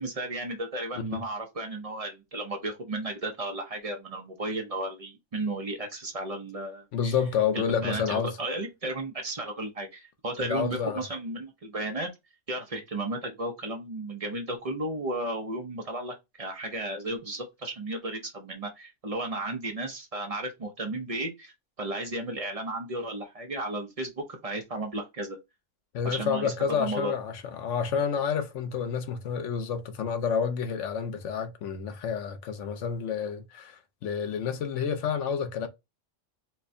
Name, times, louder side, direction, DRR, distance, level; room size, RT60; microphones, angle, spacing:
voice 1, 0.0-7.1 7.5-12.1 12.5-21.5 21.8-25.4 26.0-26.5 26.8-27.1, right 2 dB, 35° right, 0.6 m, -34 dB
voice 2, 6.9-8.4 10.4-11.0 25.9-35.7, left 7 dB, 70° left, 1.0 m, -29 dB
4.3 x 2.2 x 2.6 m
omnidirectional pair, 1.3 m